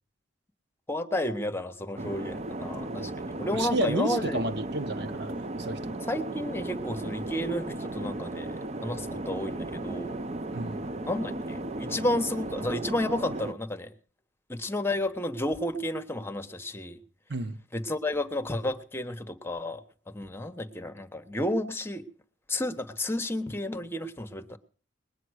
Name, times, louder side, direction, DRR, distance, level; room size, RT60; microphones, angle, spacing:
voice 1, 0.9-4.4 6.1-8.5 8.8-10.1 11.0-13.9 14.5-17.0 17.7-19.8 20.1-22.0 22.5-24.6, left 1 dB, 10° left, 1.2 m, -31 dB
sound 1, 2.0-13.5, right 2 dB, 35° right, 0.7 m, -35 dB
voice 2, 3.5-5.8 10.5-10.8 17.3-17.6, right 2 dB, 60° right, 1.1 m, -31 dB
20.5 x 9.4 x 6.4 m
head